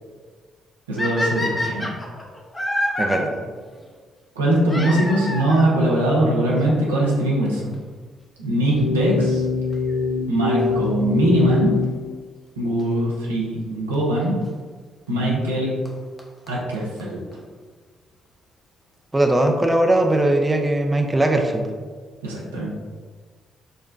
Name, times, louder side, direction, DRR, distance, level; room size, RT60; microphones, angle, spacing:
voice 1, 0.9-1.9 4.4-7.8 8.4-9.4 10.3-11.7 12.6-14.4 15.1-15.7 16.5-17.2 22.2-22.7, right 1 dB, 90° right, -5 dB, 0.6 m, -21 dB
sound 1, 1.0-3.2 4.7-5.7 6.7-6.8 7.5-7.6 7.7-7.8 9.7-10.0 12.8-12.9 13.9-14.0 15.5-15.6 15.9-16.0 16.2-16.3 16.5-16.6 16.7-16.8 17.0-17.1 17.3-17.4, left 1 dB, 25° left, 0.8 m, -26 dB
voice 2, 3.0-3.5 15.1-15.4 19.1-21.7, right 1 dB, 20° right, 3 dB, 0.5 m, -20 dB
sound 2, 8.6-11.9, left 4 dB, 80° left, 0.9 m, -23 dB
4.9 x 2.1 x 2.4 m, 1.5 s
hypercardioid pair, 45°, 0 cm